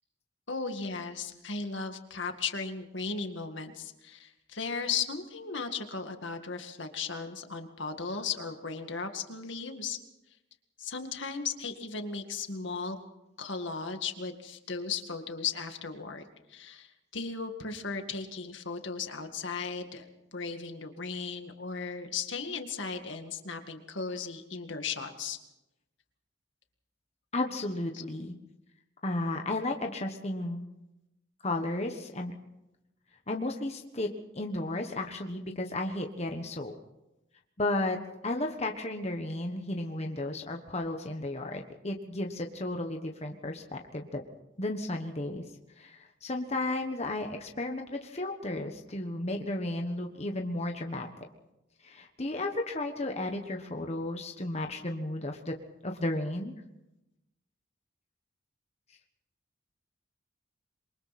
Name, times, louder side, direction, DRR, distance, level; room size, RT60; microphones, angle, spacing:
voice 1, 0.5-10.0 10.8-13.0 13.4-20.1 20.3-25.4 27.9-28.0, left 5 dB, 65° left, 6 dB, 2.1 m, -36 dB
voice 2, 27.3-28.3 29.0-30.6 31.4-32.3 33.3-34.1 34.3-36.7 37.6-44.2 44.6-45.4 45.8-51.1 51.8-55.5 55.8-56.5, left 2 dB, 35° left, 3 dB, 1.3 m, -33 dB
27.5 x 23.0 x 4.3 m, 0.92 s
head